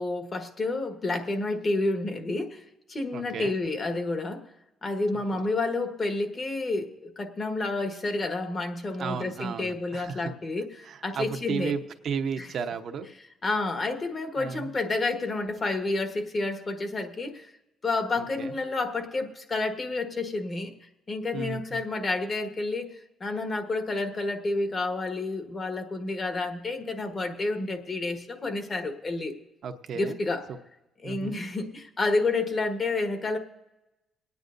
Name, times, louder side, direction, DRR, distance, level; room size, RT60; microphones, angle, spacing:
voice 1, 0.0-2.6 2.9-4.4 4.8-11.8 12.4-12.5 13.4-17.5 17.8-20.7 21.1-22.9 23.2-29.3 29.9-30.4 31.0-33.4, left 2 dB, 40° left, 6 dB, 1.4 m, -30 dB
voice 2, 3.1-3.6 5.3-5.4 9.0-10.3 10.8-13.1 14.4-14.7 18.2-18.5 21.3-21.8 29.6-30.2 31.0-31.3, right 6 dB, 65° right, 6 dB, 0.9 m, -34 dB
27.5 x 9.5 x 2.6 m, 0.99 s
cardioid pair, 90°, 0 cm